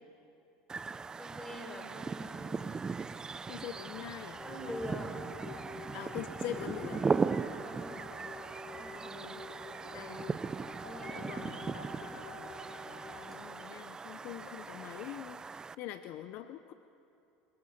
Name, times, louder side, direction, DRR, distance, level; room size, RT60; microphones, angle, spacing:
sound 1, 0.7-15.8, right 5 dB, 20° right, 0.5 m, -38 dB
voice 1, 1.2-2.8 4.4-5.2 7.6-8.1 8.7-9.3 9.9-10.3 10.8-12.3 13.3-13.5, equal, 10° left, 2 dB, 4.6 m, -46 dB
voice 2, 3.5-4.4 5.9-7.2 9.2-9.4 9.9-10.2 11.2-11.7 13.3-16.7, left 11 dB, 60° left, 10 dB, 0.7 m, -43 dB
sound 2, 4.3-13.3, left 2 dB, 30° left, 3.9 m, -48 dB
29.0 x 23.5 x 4.3 m, 2.7 s
supercardioid pair, 110°, 4 cm